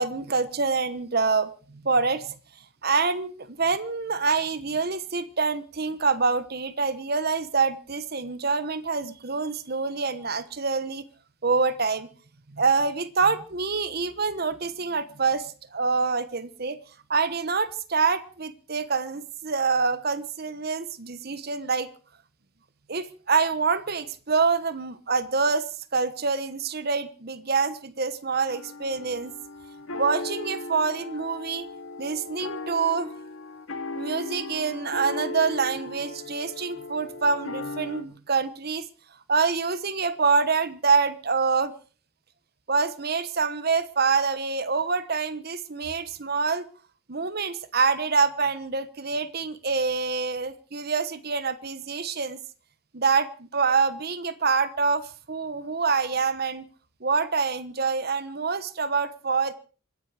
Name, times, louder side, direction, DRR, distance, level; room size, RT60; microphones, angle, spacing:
voice 1, 0.0-2.4 2.8-11.0 11.4-12.1 12.5-16.8 17.1-21.9 22.9-29.3 30.0-31.7 32.0-33.1 33.9-38.9 39.3-41.7 42.7-46.6 47.1-52.4 52.9-56.7 57.0-59.5, right 4 dB, 50° right, 1.1 m, -26 dB
sound 1, 28.5-38.0, left 2 dB, 90° left, 2.4 m, -37 dB
25.5 x 10.5 x 5.0 m
head